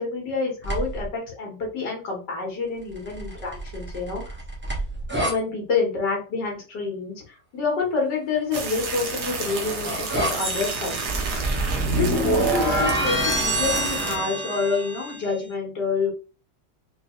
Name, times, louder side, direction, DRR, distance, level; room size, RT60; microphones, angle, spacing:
voice 1, 0.0-4.4 5.2-11.3 11.9-16.1, left 4 dB, 80° left, 0 dB, 1.7 m, -28 dB
sound 1, 0.6-1.1 3.0-5.4 8.9-15.2, right 1 dB, 10° right, 1.0 m, -27 dB
sound 2, 8.5-14.2, right 4 dB, 70° right, 1.5 m, -31 dB
3.9 x 3.2 x 2.9 m, 0.36 s
omnidirectional pair, 1.8 m